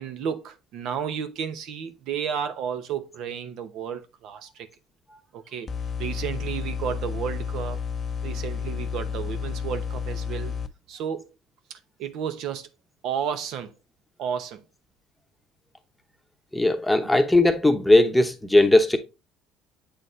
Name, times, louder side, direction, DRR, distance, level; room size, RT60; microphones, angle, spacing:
voice 1, 0.0-4.7 5.3-5.7 6.0-7.8 8.2-10.5 10.9-11.3 12.0-12.7 13.0-13.7 14.2-14.6, right 8 dB, 70° right, 0.8 m, -32 dB
sound 1, 5.7-10.7, left 6 dB, 30° left, 0.5 m, -31 dB
voice 2, 16.5-19.0, left 2 dB, 5° left, 0.9 m, -18 dB
7.9 x 4.1 x 3.1 m
cardioid pair, 115°, 0 cm